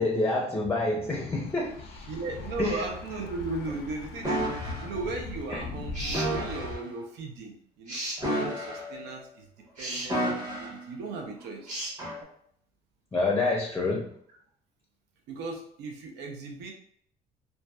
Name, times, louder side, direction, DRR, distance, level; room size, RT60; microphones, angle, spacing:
voice 1, 0.0-2.1 2.6-2.8 13.1-14.1, left 2 dB, 15° left, -1 dB, 0.5 m, -27 dB
Thunder / Bicycle, 1.0-6.8, left 3 dB, 80° left, 0.4 m, -40 dB
voice 2, 2.1-8.0 8.2-11.7 15.3-16.7, right 3 dB, 80° right, 1 dB, 0.6 m, -37 dB
sound 1, 4.2-4.9 6.1-6.8 8.2-9.1 10.1-10.8 12.0-12.2, equal, 25° right, 0.8 m, -31 dB
sound 2, 5.9-6.3 7.9-8.2 9.8-10.1 11.7-12.0, right 1 dB, 50° right, 1.3 m, -34 dB
2.6 x 2.2 x 2.2 m, 0.65 s
cardioid pair, 110°, 17 cm